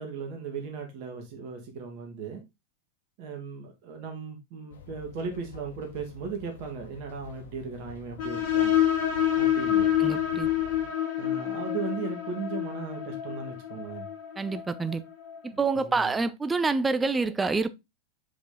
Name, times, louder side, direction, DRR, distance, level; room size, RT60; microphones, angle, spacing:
voice 1, 0.0-2.4 3.2-8.7 9.4-9.9 11.2-14.1 15.5-16.1, right 5 dB, 45° right, 2.0 m, -37 dB
sound 1, 4.7-10.9, left 6 dB, 65° left, 1.4 m, -48 dB
sound 2, 8.2-15.5, left 11 dB, 45° left, 2.7 m, -27 dB
voice 2, 10.0-10.5 14.4-15.0 15.4-17.7, right 4 dB, 10° right, 0.5 m, -27 dB
5.3 x 5.0 x 3.9 m
figure-of-eight pair, 90°, 0 cm